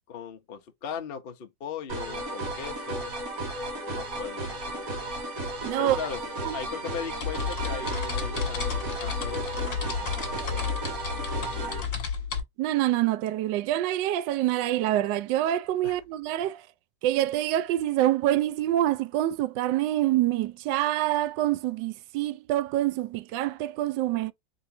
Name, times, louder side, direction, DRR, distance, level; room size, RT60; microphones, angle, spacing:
voice 1, 0.1-3.1 3.9-4.9 5.8-6.2 6.5-10.9 11.3-12.0 15.8-16.0, left 7 dB, 80° left, 0.5 m, -39 dB
sound 1, 1.9-11.8, right 2 dB, 45° right, 1.9 m, -34 dB
voice 2, 5.6-6.0 6.4-6.6 12.6-16.7 17.0-24.3, right 13 dB, 70° right, 1.2 m, -26 dB
sound 2, 5.8-5.9 6.2-12.4, left 6 dB, 40° left, 1.8 m, -32 dB
4.7 x 3.8 x 2.6 m
omnidirectional pair, 2.2 m